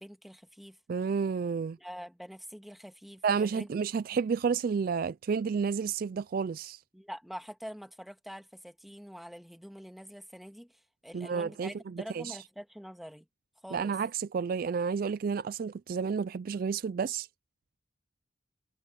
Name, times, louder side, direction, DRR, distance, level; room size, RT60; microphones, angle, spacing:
voice 1, 0.0-0.8 1.8-3.7 4.1-4.2 6.9-13.3 13.6-13.9, equal, ahead, 1.8 m, -46 dB
voice 2, 0.9-1.8 3.2-6.8 11.1-11.7 12.1-12.4 13.7-17.3, right 6 dB, 45° right, 0.3 m, -30 dB
head